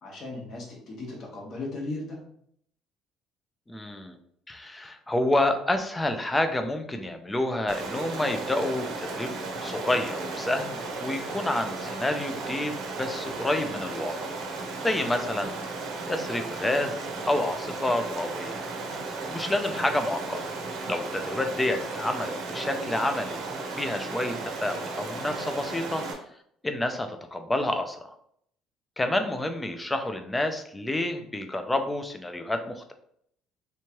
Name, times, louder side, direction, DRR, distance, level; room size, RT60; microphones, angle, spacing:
voice 1, 0.0-2.2, left 2 dB, 40° left, -1 dB, 1.0 m, -36 dB
voice 2, 3.7-4.2 4.5-9.3 9.6-14.3 14.8-15.7 16.1-18.6 19.3-20.4 20.9-26.0 26.6-28.0 29.0-32.9, left 1 dB, 10° left, 6 dB, 0.3 m, -29 dB
Stream, 7.7-26.1, right 3 dB, 65° right, 0.7 m, -35 dB
3.4 x 3.0 x 2.9 m, 0.69 s
cardioid pair, 165°, 0 cm